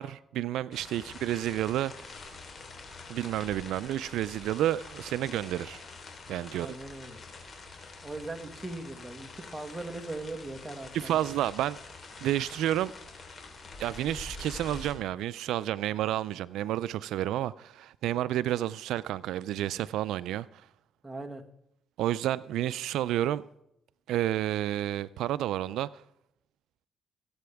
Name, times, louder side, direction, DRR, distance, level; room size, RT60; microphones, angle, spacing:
voice 1, 0.0-1.9 3.1-5.8 6.3-6.7 10.9-11.8 12.2-12.9 13.8-20.6 22.0-23.4 24.1-25.9, right 12 dB, 85° right, 0.4 m, -30 dB
sound 1, 0.7-14.9, left 3 dB, 40° left, 3.6 m, -46 dB
voice 2, 6.5-7.2 8.0-11.1 21.0-21.4, right 2 dB, 10° right, 1.8 m, -39 dB
22.0 x 8.5 x 3.5 m
cardioid pair, 90°, 0 cm